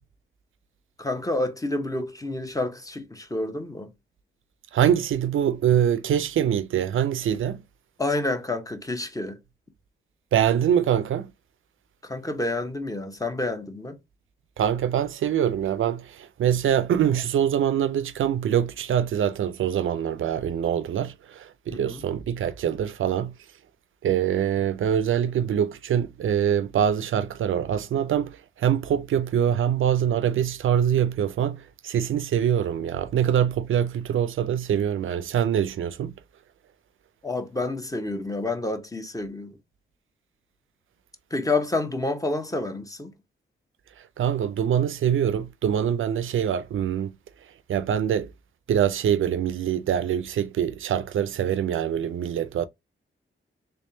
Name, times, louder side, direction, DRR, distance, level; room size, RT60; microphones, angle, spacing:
voice 1, 1.0-3.9 8.0-9.4 12.0-14.0 21.7-22.0 37.2-39.6 41.3-43.1, left 2 dB, 15° left, 0.9 m, -29 dB
voice 2, 4.7-7.6 10.3-11.3 14.6-23.3 24.0-36.1 44.2-47.1 47.7-48.3 48.7-52.7, right 9 dB, 75° right, 0.4 m, -24 dB
3.4 x 3.3 x 2.7 m
cardioid pair, 75°, 21 cm